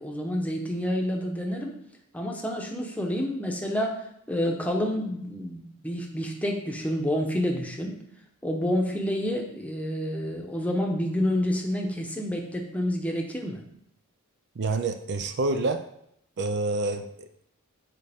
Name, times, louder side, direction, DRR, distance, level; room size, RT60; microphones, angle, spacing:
voice 1, 0.0-1.7 2.1-4.0 4.3-8.0 8.4-13.6, equal, 5° left, 1 dB, 0.9 m, -28 dB
voice 2, 14.6-15.8 16.4-17.4, right 3 dB, 50° right, 8 dB, 0.5 m, -28 dB
9.3 x 4.7 x 3.5 m, 0.74 s
head